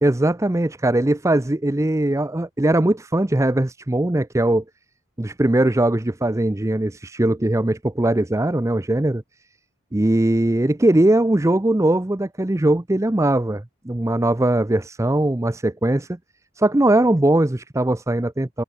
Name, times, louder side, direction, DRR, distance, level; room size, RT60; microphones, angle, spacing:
voice 1, 0.0-4.6 5.2-9.2 9.9-16.2 16.6-18.6, right 1 dB, 15° right, 0.6 m, -20 dB
head